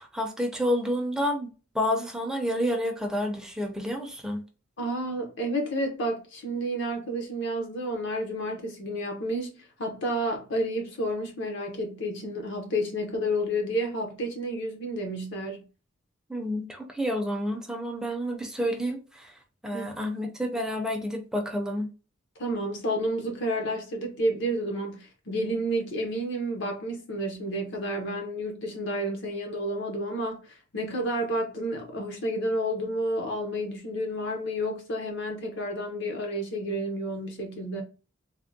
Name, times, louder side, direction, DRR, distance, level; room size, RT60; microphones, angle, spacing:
voice 1, 0.0-4.4 16.3-21.9, equal, 5° right, 0.5 m, -29 dB
voice 2, 4.8-15.6 19.7-20.1 22.4-37.8, equal, 60° left, 0.7 m, -30 dB
3.4 x 2.1 x 2.6 m
head